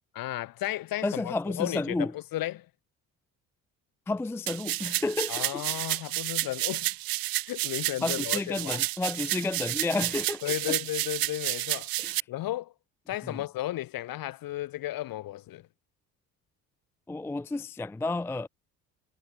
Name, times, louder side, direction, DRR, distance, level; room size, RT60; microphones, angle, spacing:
voice 1, 0.1-2.7 5.3-6.9 7.5-8.8 10.4-11.9 12.3-12.7 13.1-15.6, left 15 dB, 45° left, 1.3 m, -34 dB
voice 2, 1.0-2.1 4.1-5.6 8.0-10.8 12.0-12.2 13.2-13.4 17.1-18.5, left 2 dB, 5° left, 0.5 m, -31 dB
sound 1, 4.5-12.2, right 18 dB, 45° right, 1.0 m, -31 dB
figure-of-eight pair, 55°, 48 cm